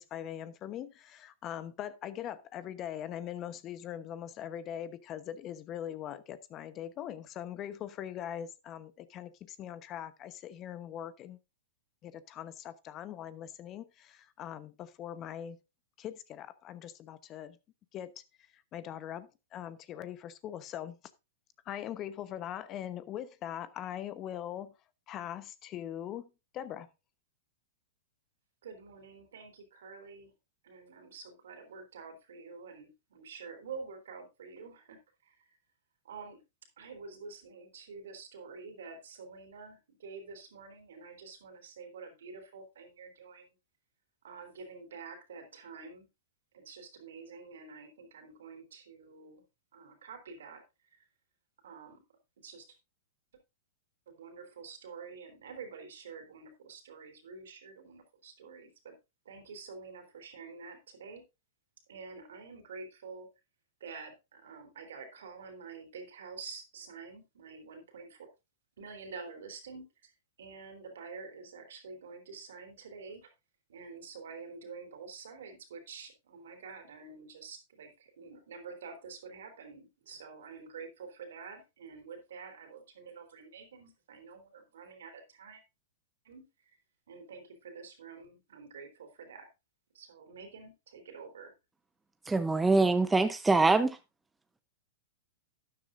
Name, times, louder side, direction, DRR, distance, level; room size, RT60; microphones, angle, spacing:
voice 1, 0.0-11.4 12.0-15.6 16.0-17.6 17.9-18.2 18.5-21.0 21.6-24.7 25.1-26.9, left 10 dB, 35° left, 1.0 m, -41 dB
voice 2, 28.6-30.3 30.6-35.5 36.0-36.4 36.8-43.6 44.2-46.1 46.5-49.4 49.7-50.6 50.9-51.1 51.6-52.0 52.4-52.8 54.1-59.0 59.3-61.2 61.9-63.3 63.8-68.3 68.8-73.3 73.7-85.6 86.2-86.7 87.1-89.5 89.9-91.5, right 5 dB, 70° right, 3.5 m, -48 dB
voice 3, 92.3-94.0, right 3 dB, 10° right, 0.8 m, -24 dB
12.5 x 10.5 x 2.6 m
hypercardioid pair, 110°, 0 cm